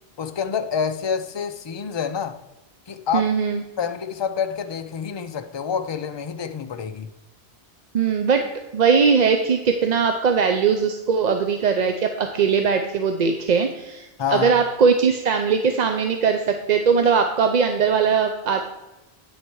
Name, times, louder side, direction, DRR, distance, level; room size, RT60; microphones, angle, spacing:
voice 1, 0.2-2.4 2.9-3.3 3.8-7.1 14.2-14.6, left 7 dB, 40° left, 0.4 m, -27 dB
voice 2, 3.1-3.6 7.9-8.5 8.7-18.7, right 6 dB, 50° right, 0.6 m, -20 dB
8.8 x 6.5 x 4.6 m
omnidirectional pair, 1.1 m